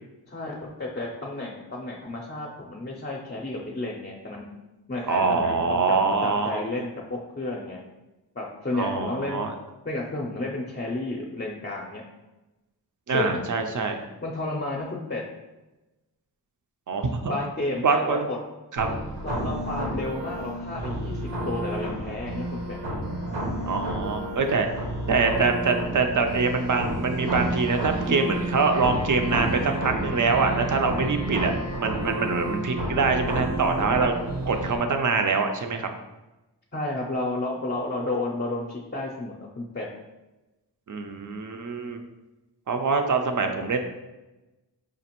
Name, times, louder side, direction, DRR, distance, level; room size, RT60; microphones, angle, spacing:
voice 1, 0.3-4.5 4.9-7.8 8.4-9.5 9.9-12.0 13.1-13.5 14.2-15.2 17.2-18.4 19.2-21.2 21.5-22.8 36.7-39.9, left 2 dB, 25° left, -2 dB, 0.5 m, -32 dB
voice 2, 5.1-6.6 8.7-9.5 13.1-14.0 16.9-17.4 17.8-18.3 18.7-18.9 23.7-24.7 25.1-31.5 31.8-34.1 34.5-35.9 40.9-42.0 42.7-43.8, right 4 dB, 45° right, 5 dB, 0.5 m, -24 dB
sound 1, 18.8-34.8, right 1 dB, 75° right, 0.9 m, -30 dB
5.1 x 2.5 x 2.9 m, 1.0 s
wide cardioid pair, 80°, 43 cm